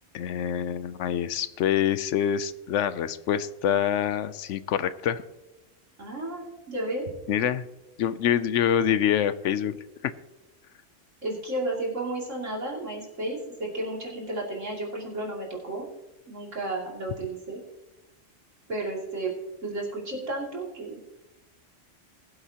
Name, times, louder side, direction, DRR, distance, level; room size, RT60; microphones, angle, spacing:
voice 1, 0.1-5.2 7.3-7.6 8.0-9.7 10.0-10.1, left 9 dB, 75° left, 14 dB, 0.9 m, -26 dB
voice 2, 6.0-7.0 11.2-15.9 16.3-17.6 18.7-19.3 19.6-21.0, right 2 dB, 80° right, -3 dB, 3.1 m, -32 dB
21.5 x 7.9 x 2.9 m, 1.0 s
omnidirectional pair, 1.3 m